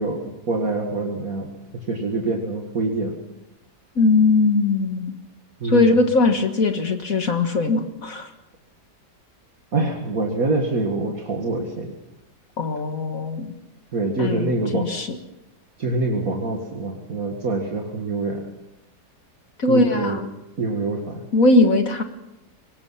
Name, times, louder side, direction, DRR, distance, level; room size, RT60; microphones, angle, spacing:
voice 1, 0.0-1.5 1.9-3.2 5.6-6.0 9.7-11.9 13.9-14.9 15.8-18.4 19.7-20.2 20.6-21.3, right 2 dB, 55° right, 0 dB, 2.4 m, -25 dB
voice 2, 4.0-5.1 5.6-8.3 12.6-13.5 14.2-15.1 19.6-20.3 21.3-22.0, left 2 dB, 55° left, 6 dB, 2.0 m, -20 dB
23.0 x 19.5 x 5.8 m, 0.92 s
omnidirectional pair, 1.8 m